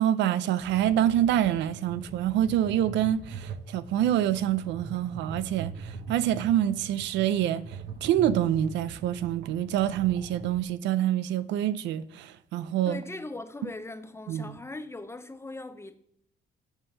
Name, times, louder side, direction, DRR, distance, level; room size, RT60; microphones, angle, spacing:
voice 1, 0.0-13.0 14.3-14.6, right 11 dB, 85° right, 0.5 m, -26 dB
sound 1, 0.6-10.6, right 4 dB, 60° right, 1.0 m, -42 dB
voice 2, 12.9-16.0, left 2 dB, 15° left, 0.6 m, -40 dB
8.1 x 3.7 x 6.6 m
cardioid pair, 105°, 18 cm